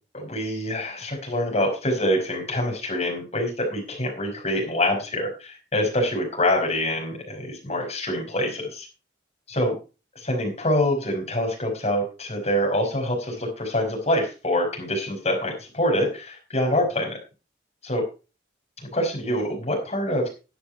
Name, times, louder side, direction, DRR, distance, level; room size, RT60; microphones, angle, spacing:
voice 1, 0.1-8.9 9.5-9.7 10.1-17.2 17.8-18.1 18.8-20.3, left 1 dB, 35° left, 0 dB, 5.1 m, -25 dB
11.0 x 10.0 x 4.5 m, 0.33 s
head